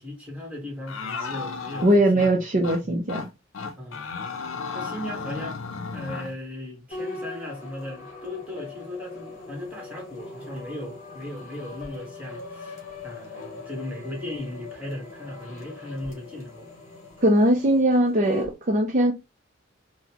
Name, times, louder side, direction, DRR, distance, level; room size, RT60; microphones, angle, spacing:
voice 1, 0.0-1.9 2.1-2.3 2.5-2.9 3.8-4.1 4.7-5.6 5.9-12.8 13.0-16.7, left 1 dB, 5° right, 1.2 m, -37 dB
sound 1, 0.9-2.3 2.6-2.8 3.1-3.3 3.5-6.3, left 5 dB, 75° left, 0.5 m, -34 dB
voice 2, 1.8-3.2 17.2-19.1, right 1 dB, 35° right, 0.5 m, -20 dB
sound 2, 6.9-18.5, left 2 dB, 35° left, 1.3 m, -41 dB
3.9 x 2.1 x 2.8 m
head